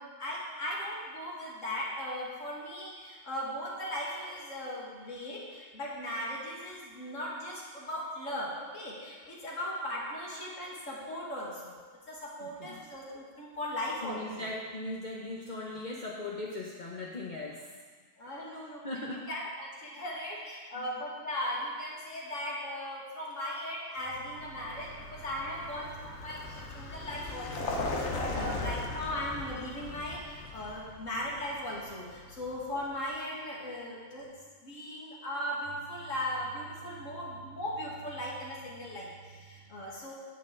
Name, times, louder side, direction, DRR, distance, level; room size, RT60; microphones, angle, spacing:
voice 1, 0.0-11.8 12.1-14.5 18.2-18.8 19.1-34.3 34.6-40.1, left 1 dB, 85° left, -5 dB, 2.4 m, -38 dB
voice 2, 12.4-12.8 14.0-17.7 18.8-19.3 20.0-20.1 20.7-20.9 26.2-26.4 26.8-26.9 27.9-28.7 36.0-36.1 37.1-37.2 39.6-40.0, left 2 dB, 40° left, -4 dB, 1.0 m, -40 dB
Vehicle, 24.1-32.9, left 3 dB, 65° left, 1.3 m, -39 dB
10.0 x 9.1 x 3.8 m, 1.5 s
omnidirectional pair, 1.3 m